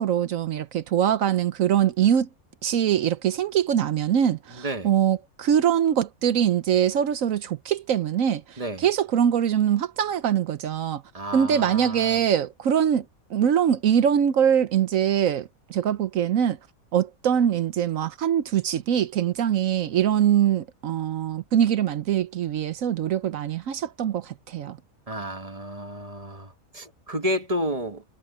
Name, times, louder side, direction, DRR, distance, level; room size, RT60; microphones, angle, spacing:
voice 1, 0.0-2.3 2.6-11.0 11.3-16.6 16.9-24.8, right 9 dB, 70° right, 1.1 m, -23 dB
voice 2, 4.5-4.9 8.6-8.9 11.1-12.2 25.1-28.0, equal, 25° right, 1.3 m, -31 dB
omnidirectional pair, 1.5 m